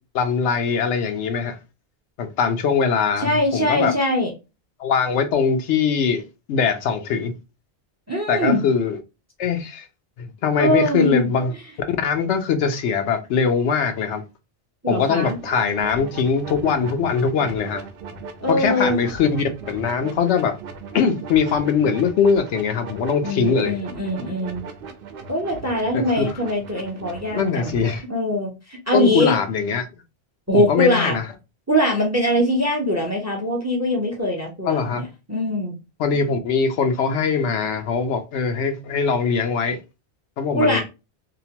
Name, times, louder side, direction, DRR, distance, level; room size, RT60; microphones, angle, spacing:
voice 1, 0.1-1.6 2.2-3.9 4.8-6.2 6.5-7.3 8.3-9.0 9.4-9.9 10.2-11.5 11.9-14.2 14.9-17.8 18.5-20.5 20.9-23.8 25.9-26.4 27.4-28.0 28.9-29.8 30.5-31.2 34.7-35.0 36.0-39.8 40.4-40.8, left 6 dB, 90° left, 0.9 m, -21 dB
voice 2, 3.2-4.3 8.1-8.6 10.6-11.3 14.8-15.4 18.4-19.1 23.2-24.6 25.3-27.8 28.1-29.4 30.5-31.2 31.7-35.8 40.5-40.8, left 1 dB, 20° right, 0.5 m, -22 dB
sound 1, 15.2-28.0, right 5 dB, 60° right, 0.7 m, -38 dB
2.8 x 2.1 x 2.8 m
omnidirectional pair, 1.1 m